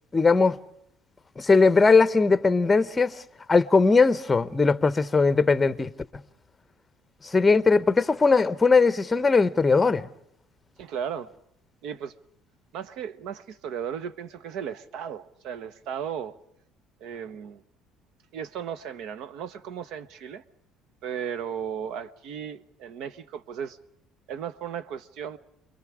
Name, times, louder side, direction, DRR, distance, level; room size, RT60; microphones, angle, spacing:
voice 1, 0.1-0.6 1.4-3.2 3.5-5.9 7.2-10.1, left 4 dB, 15° left, 0.8 m, -20 dB
voice 2, 10.8-11.3 11.8-12.1 12.7-16.4 17.0-17.6 18.3-20.4 21.0-23.8 24.3-25.4, right 8 dB, 65° right, 1.0 m, -35 dB
29.5 x 23.0 x 5.0 m
cardioid pair, 155°, 0 cm